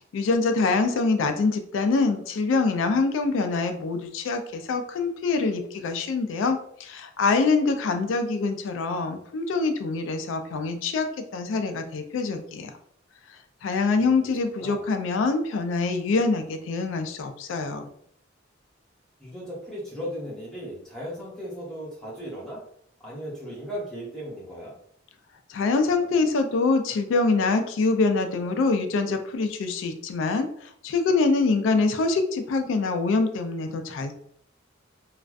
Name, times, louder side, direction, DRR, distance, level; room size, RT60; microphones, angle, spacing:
voice 1, 0.1-12.7 13.6-17.8 25.5-34.1, left 3 dB, 80° left, 7 dB, 0.3 m, -25 dB
voice 2, 13.9-14.3 14.5-14.9 19.2-22.6 23.0-24.7, equal, 5° left, -6 dB, 0.8 m, -37 dB
2.4 x 2.2 x 2.4 m, 0.67 s
head